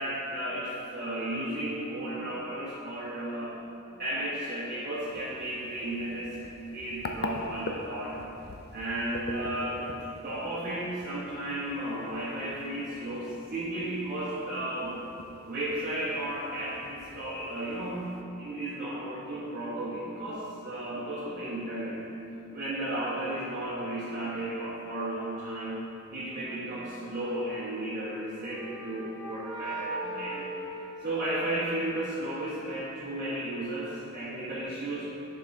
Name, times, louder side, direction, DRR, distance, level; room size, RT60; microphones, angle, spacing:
voice 1, 0.0-3.5 3.9-6.3 6.7-8.2 8.7-9.9 10.2-15.0 15.5-18.0 18.4-22.0 22.5-25.8 26.1-30.5 31.0-35.1, right 1 dB, 45° right, -11 dB, 1.4 m, -34 dB
sound 1, 4.9-18.2, left 3 dB, 50° left, 0.4 m, -44 dB
sound 2, 27.9-31.8, right 2 dB, 10° right, 1.5 m, -39 dB
10.5 x 5.4 x 2.8 m, 2.9 s
head